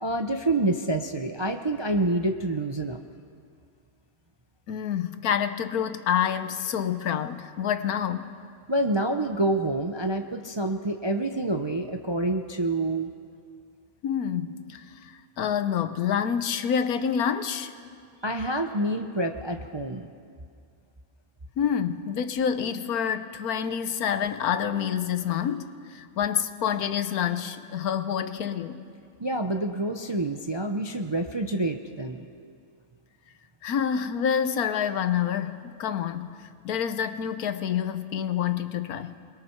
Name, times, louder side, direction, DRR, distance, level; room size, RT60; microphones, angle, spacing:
voice 1, 0.0-3.0 8.7-13.1 18.2-20.1 29.2-32.4, right 1 dB, 30° right, 5 dB, 0.5 m, -27 dB
voice 2, 4.7-8.3 14.0-17.7 21.6-28.8 33.6-36.3 36.6-39.1, left 8 dB, 80° left, 10 dB, 1.3 m, -27 dB
28.5 x 20.5 x 4.6 m, 2.2 s
omnidirectional pair, 1.5 m